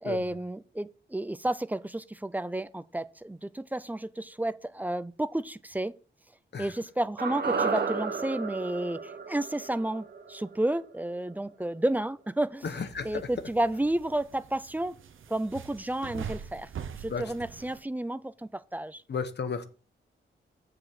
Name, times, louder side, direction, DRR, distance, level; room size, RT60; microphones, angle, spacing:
voice 1, 0.0-5.9 6.6-12.7 13.0-15.0 15.3-19.0, right 1 dB, 10° right, 0.4 m, -31 dB
sound 1, 7.2-11.5 11.8-11.9, right 5 dB, 55° right, 1.0 m, -33 dB
voice 2, 12.6-13.2 17.1-17.3 19.1-19.6, left 5 dB, 60° left, 1.0 m, -33 dB
sound 2, 12.6-17.8, right 7 dB, 90° right, 0.7 m, -44 dB
7.7 x 4.8 x 6.4 m
wide cardioid pair, 140°, 20 cm